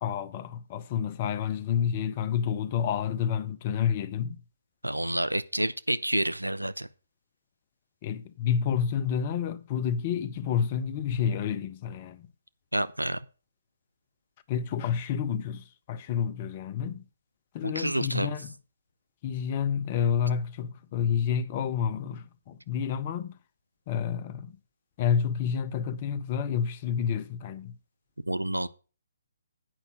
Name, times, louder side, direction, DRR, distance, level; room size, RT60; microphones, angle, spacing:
voice 1, 0.0-4.4 8.0-12.3 14.5-17.0 17.5-18.5 19.2-23.3 23.9-24.6 25.0-27.7, left 8 dB, 30° left, 0.6 m, -29 dB
voice 2, 4.8-6.9 12.7-13.2 17.6-18.3 28.3-28.7, right 1 dB, 85° right, 0.5 m, -29 dB
8.8 x 5.4 x 6.2 m
figure-of-eight pair, 135°, 0 cm